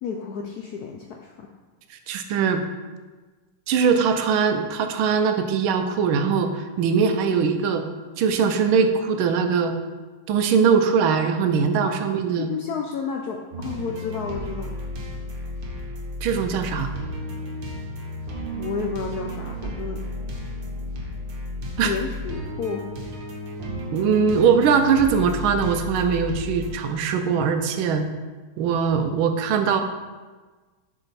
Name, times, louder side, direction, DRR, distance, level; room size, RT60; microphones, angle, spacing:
voice 1, 0.0-1.5 11.8-11.9 12.5-14.8 18.5-20.0 21.8-22.8, left 6 dB, 75° left, 2 dB, 0.8 m, -31 dB
voice 2, 2.1-2.6 3.7-7.8 8.2-9.7 10.3-12.5 16.2-16.9 21.8-21.9 23.9-28.0 28.6-29.8, right 6 dB, 90° right, 7 dB, 1.5 m, -21 dB
sound 1, 13.5-26.7, equal, 65° right, 1.8 m, -33 dB
6.9 x 5.5 x 4.1 m, 1.3 s
omnidirectional pair, 2.2 m